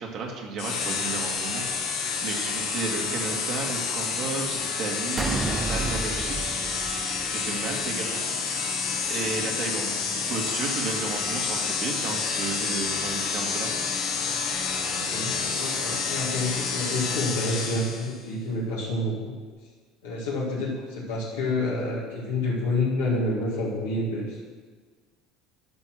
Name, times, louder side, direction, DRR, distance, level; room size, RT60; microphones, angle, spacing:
voice 1, 0.0-6.6 6.9-8.2 9.0-13.7, right 4 dB, 55° right, 1 dB, 2.1 m, -33 dB
sound 1, 0.6-18.2, left 5 dB, 65° left, 1.7 m, -29 dB
sound 2, 5.2-7.7, right 3 dB, 25° right, 0.5 m, -32 dB
voice 2, 14.9-19.3 20.0-24.4, left 2 dB, 80° left, -5 dB, 1.9 m, -28 dB
12.0 x 4.5 x 6.2 m, 1.5 s
hypercardioid pair, 70°, 0 cm